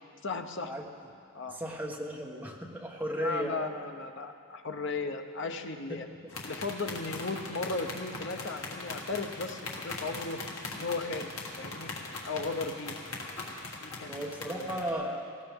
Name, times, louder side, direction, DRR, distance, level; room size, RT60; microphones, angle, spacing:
voice 1, 0.2-0.7 1.3-1.6 3.2-6.1 6.4-10.4 10.7-11.3 11.6-11.9 12.3-13.0 13.8-14.2 14.5-15.2, left 3 dB, 55° left, 6 dB, 0.8 m, -36 dB
voice 2, 1.5-3.6 5.9-6.0 14.1-15.3, right 1 dB, 10° right, -1 dB, 1.2 m, -35 dB
sound 1, 6.3-14.9, left 3 dB, 70° left, 1.7 m, -40 dB
18.5 x 16.0 x 3.6 m, 2.4 s
head